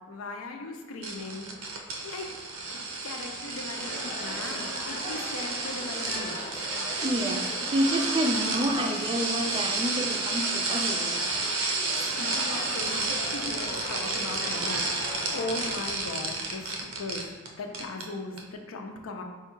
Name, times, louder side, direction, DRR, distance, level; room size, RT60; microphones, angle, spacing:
voice 1, 0.1-1.8 2.0-2.3 3.0-6.4 12.2-19.2, left 2 dB, 85° left, 3 dB, 0.5 m, -38 dB
sound 1, 1.0-17.5 17.7-18.0 18.4-18.5, right 3 dB, 90° right, 0.7 m, -31 dB
sound 2, 3.8-15.7, left 1 dB, 45° left, 0.7 m, -40 dB
voice 2, 7.0-11.2, right 1 dB, 25° right, 3 dB, 0.3 m, -29 dB
4.6 x 2.3 x 4.5 m, 1.3 s
head